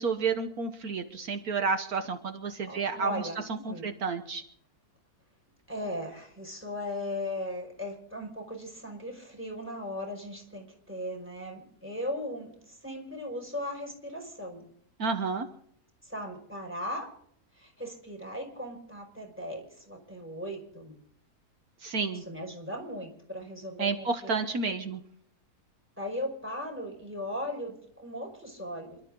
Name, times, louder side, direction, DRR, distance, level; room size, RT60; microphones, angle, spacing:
voice 1, 0.0-3.2 3.6-4.4 15.0-15.5 21.8-22.2 23.8-25.0, right 4 dB, 70° right, 7 dB, 1.6 m, -30 dB
voice 2, 2.7-3.4 3.7-3.9 5.7-14.7 16.0-17.1 17.5-20.9 22.1-24.3 24.7-24.8 26.0-29.0, left 1 dB, 5° right, 2 dB, 5.5 m, -38 dB
28.0 x 12.5 x 3.8 m, 0.67 s
omnidirectional pair, 1.6 m